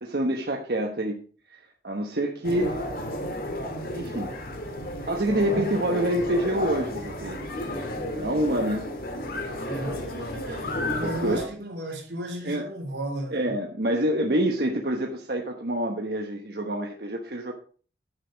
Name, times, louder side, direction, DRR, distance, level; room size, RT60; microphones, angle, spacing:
voice 1, 0.0-1.2 1.5-2.8 3.9-4.3 5.1-7.4 8.1-8.9 11.0-11.4 12.4-12.7 13.3-17.5, right 1 dB, 60° right, 1.2 m, -27 dB
sound 1, 2.4-11.5, left 1 dB, 55° left, 2.0 m, -32 dB
voice 2, 5.5-5.8 9.6-13.5, right 1 dB, 85° right, 3.0 m, -35 dB
9.9 x 6.7 x 5.1 m
head